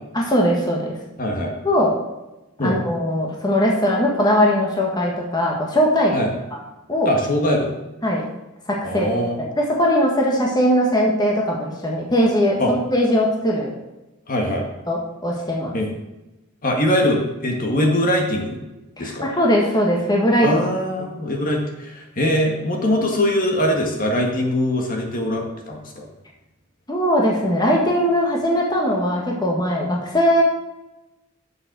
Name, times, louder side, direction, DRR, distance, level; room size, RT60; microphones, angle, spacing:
voice 1, 0.1-1.0 1.6-2.0 2.6-6.3 6.9-7.1 8.0-8.2 8.7-9.1 9.6-13.7 14.9-15.7 19.0-20.5 26.9-30.4, equal, 20° left, -2 dB, 1.6 m, -20 dB
voice 2, 1.2-1.5 2.6-2.8 6.1-6.3 7.0-7.7 8.8-9.4 12.6-12.7 14.3-14.6 15.7-15.9 16.6-18.6 19.0-19.3 20.4-26.1, left 1 dB, 45° left, 1 dB, 1.7 m, -22 dB
7.7 x 6.8 x 6.1 m, 0.99 s
head